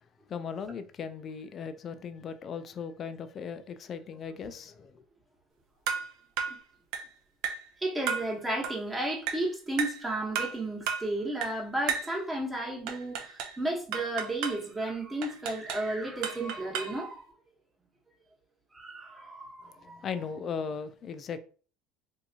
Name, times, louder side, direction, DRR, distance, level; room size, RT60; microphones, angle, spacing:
voice 1, 0.3-5.0 19.6-21.4, left 6 dB, 40° left, 0.4 m, -38 dB
sound 1, 5.9-6.1 6.4-6.6 6.9-7.1 7.4-7.7 8.1-8.3 8.6-8.8 9.3-9.5 9.8-10.0 10.3-10.6 10.9-11.1 11.4-11.6 11.9-12.1 12.9-13.6 13.9-14.6 15.2-15.9 16.2-17.0, right 7 dB, 70° right, 0.7 m, -33 dB
voice 2, 7.8-17.3 18.7-20.0, right 1 dB, 15° right, 1.1 m, -33 dB
3.4 x 2.7 x 2.8 m
supercardioid pair, 120°, 0 cm